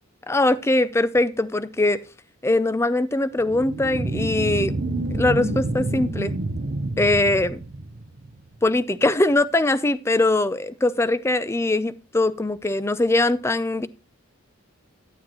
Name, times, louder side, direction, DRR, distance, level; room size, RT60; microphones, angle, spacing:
voice 1, 0.3-2.0 2.4-4.7 5.1-6.3 7.0-7.6 8.6-13.9, left 2 dB, 15° left, 0.4 m, -21 dB
sound 1, 3.4-8.4, right 2 dB, 55° right, 0.8 m, -28 dB
12.0 x 7.7 x 3.0 m
head